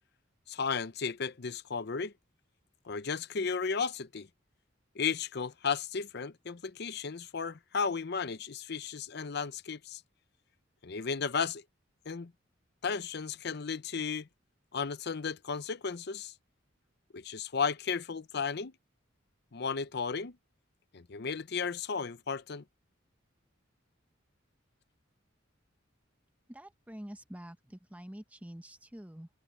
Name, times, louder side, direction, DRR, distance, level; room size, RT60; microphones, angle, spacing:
voice 1, 0.5-2.1 2.8-4.3 4.9-10.0 10.8-11.6 12.1-12.3 12.8-14.3 14.7-16.3 17.1-18.7 19.5-20.4 20.9-22.6, left 5 dB, 55° left, 0.7 m, -34 dB
voice 2, 26.5-29.3, equal, 5° right, 0.9 m, -47 dB
head